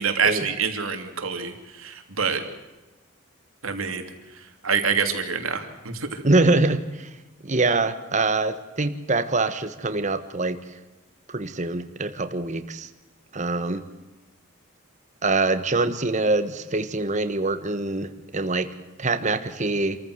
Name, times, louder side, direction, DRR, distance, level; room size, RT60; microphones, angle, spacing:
voice 1, 0.0-2.4 3.6-4.0 4.6-6.2, right 6 dB, 75° right, 6 dB, 2.8 m, -26 dB
voice 2, 6.2-7.1 7.4-10.6 11.3-12.9 13.3-13.8 15.2-18.7 19.0-20.0, right 2 dB, 35° right, 9 dB, 1.3 m, -24 dB
27.0 x 14.5 x 7.9 m, 1.2 s
head